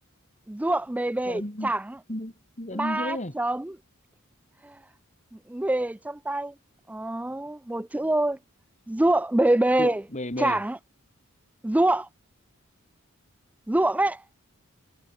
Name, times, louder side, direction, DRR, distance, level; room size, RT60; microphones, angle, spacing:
voice 1, 0.5-2.0 2.7-3.8 4.6-4.8 5.5-6.5 6.9-8.4 8.9-10.0 10.4-10.8 11.6-12.1 13.7-14.2, right 1 dB, 5° right, 0.3 m, -25 dB
voice 2, 1.3-1.7 2.1-3.3 9.8-10.6, left 1 dB, 35° left, 4.0 m, -33 dB
head